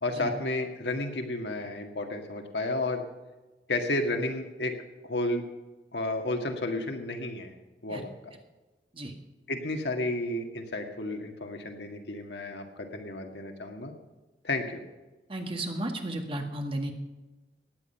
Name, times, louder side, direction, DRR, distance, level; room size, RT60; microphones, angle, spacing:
voice 1, 0.0-3.0 3.7-4.8 5.0-5.4 5.9-7.5 7.8-8.3 9.5-13.9 14.4-14.8, left 2 dB, 70° left, 4 dB, 1.9 m, -32 dB
voice 2, 15.3-16.9, right 1 dB, 30° right, 4 dB, 1.9 m, -33 dB
17.0 x 10.5 x 5.7 m, 1.2 s
head